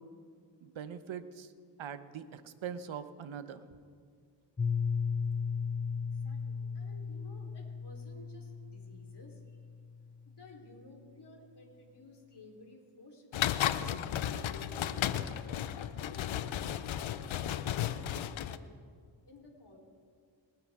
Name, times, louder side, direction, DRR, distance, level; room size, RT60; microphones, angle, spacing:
voice 1, 0.6-1.5 1.8-3.6, right 8 dB, 70° right, 12 dB, 1.1 m, -42 dB
Piano, 4.6-10.2, left 5 dB, 15° left, 0.5 m, -36 dB
voice 2, 6.0-9.6 10.3-13.6 14.2-18.6 19.3-19.8, left 2 dB, 55° left, 0 dB, 3.9 m, -54 dB
sound 1, 13.3-18.6, left 10 dB, 70° left, 0.7 m, -34 dB
27.0 x 9.5 x 3.7 m, 2.1 s
supercardioid pair, 40°, 49 cm